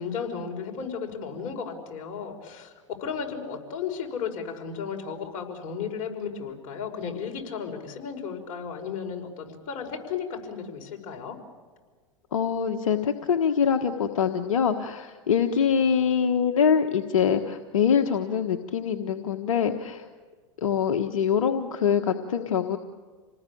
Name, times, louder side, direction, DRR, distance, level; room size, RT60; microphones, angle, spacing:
voice 1, 0.0-2.7 3.0-11.4, left 6 dB, 50° left, 2 dB, 5.8 m, -34 dB
voice 2, 12.3-20.1 20.6-22.8, left 7 dB, 80° left, 6 dB, 1.4 m, -24 dB
28.0 x 19.5 x 8.7 m, 1.5 s
hypercardioid pair, 105°, 17 cm